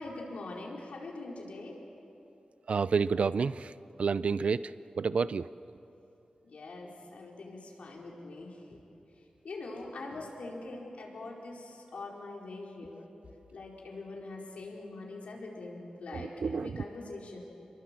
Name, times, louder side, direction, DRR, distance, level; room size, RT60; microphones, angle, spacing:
voice 1, 0.0-1.8 6.4-8.8 9.4-13.0 13.5-17.4, left 2 dB, 70° left, -2 dB, 4.7 m, -43 dB
voice 2, 2.7-3.7 4.0-5.5 16.1-16.8, right 5 dB, 60° right, 16 dB, 0.5 m, -30 dB
28.5 x 22.5 x 7.7 m, 2.8 s
wide cardioid pair, 140°, 2 cm